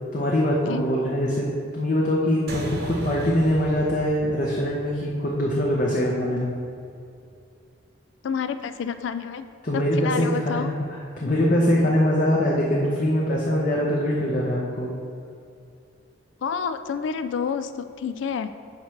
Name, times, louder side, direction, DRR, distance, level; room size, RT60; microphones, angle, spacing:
voice 1, 0.1-1.5 1.7-6.5 9.7-10.6 11.2-14.9, equal, 40° left, -3 dB, 0.8 m, -23 dB
sound 1, 2.5-7.3, right 1 dB, 55° right, 0.9 m, -37 dB
voice 2, 8.2-9.5 9.7-10.8 11.2-11.3 16.4-18.5, left 6 dB, 70° left, 11 dB, 0.3 m, -29 dB
9.3 x 3.2 x 5.8 m, 2.5 s
head